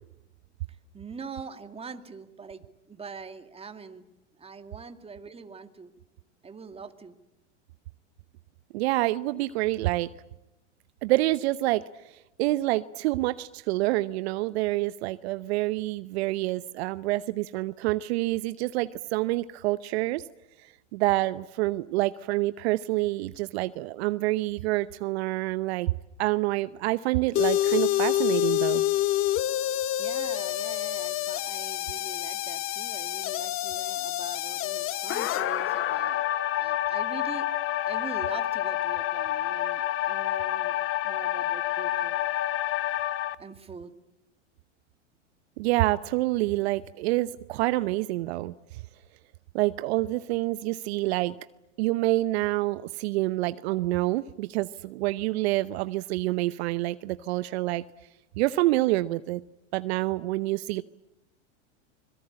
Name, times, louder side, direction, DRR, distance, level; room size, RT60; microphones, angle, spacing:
voice 1, 0.9-4.1 4.4-5.9 6.4-7.2 29.7-36.2 36.6-37.5 37.8-40.8 41.0-42.2 43.4-43.9, right 5 dB, 15° right, 8 dB, 2.1 m, -43 dB
voice 2, 8.7-10.1 11.0-20.2 20.6-25.9 26.2-28.8 45.6-48.8 49.5-51.3 51.8-57.8 58.4-59.4 59.7-60.8, right 18 dB, 60° right, 15 dB, 0.8 m, -27 dB
sound 1, 27.3-43.3, left 13 dB, 35° left, 1.1 m, -28 dB
25.5 x 22.0 x 8.8 m, 0.95 s
hypercardioid pair, 105°, 36 cm